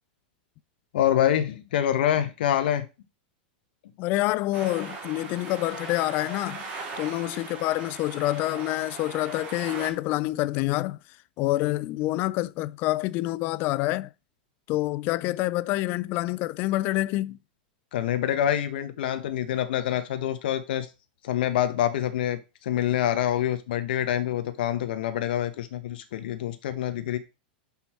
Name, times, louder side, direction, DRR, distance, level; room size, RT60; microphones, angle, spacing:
voice 1, 0.9-2.9 17.9-20.9 21.2-27.2, left 11 dB, 70° left, 1.0 m, -26 dB
voice 2, 4.0-6.6 7.0-11.0 11.4-14.1 14.7-17.4, left 17 dB, 40° left, 0.4 m, -27 dB
sound 1, 4.5-9.9, right 4 dB, 30° right, 2.7 m, -39 dB
6.1 x 5.5 x 4.3 m
supercardioid pair, 135°, 5 cm